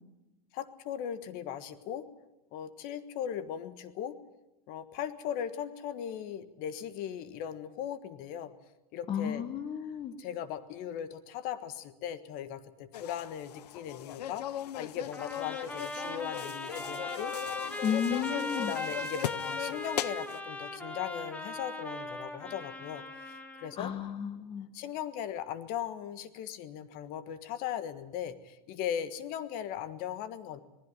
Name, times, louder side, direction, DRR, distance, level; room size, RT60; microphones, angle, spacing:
voice 1, 0.5-2.1 2.5-4.2 4.7-8.5 8.9-9.4 10.2-14.5 14.7-17.3 18.6-23.9 24.7-30.6, left 9 dB, 45° left, 12 dB, 1.5 m, -38 dB
voice 2, 9.1-10.1 17.8-18.7 23.8-24.7, left 8 dB, 25° left, 11 dB, 1.1 m, -33 dB
sound 1, 12.9-20.4, left 12 dB, 90° left, 0.7 m, -38 dB
Trumpet, 15.1-23.8, left 1 dB, 5° left, 1.8 m, -39 dB
19.5 x 15.5 x 9.8 m, 1.0 s
supercardioid pair, 130°, 20 cm